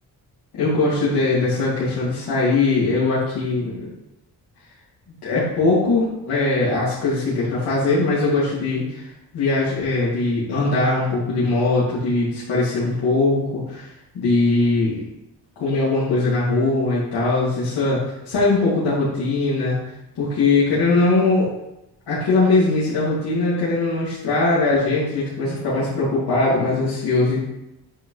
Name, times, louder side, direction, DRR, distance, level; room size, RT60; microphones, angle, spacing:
voice 1, 0.6-3.9 5.2-9.1 9.3-13.9 14.1-15.0 15.6-18.0 18.2-19.8 20.2-21.5 22.1-27.4, left 3 dB, 80° left, -10 dB, 2.8 m, -20 dB
9.2 x 6.1 x 3.4 m, 0.88 s
wide cardioid pair, 150°, 39 cm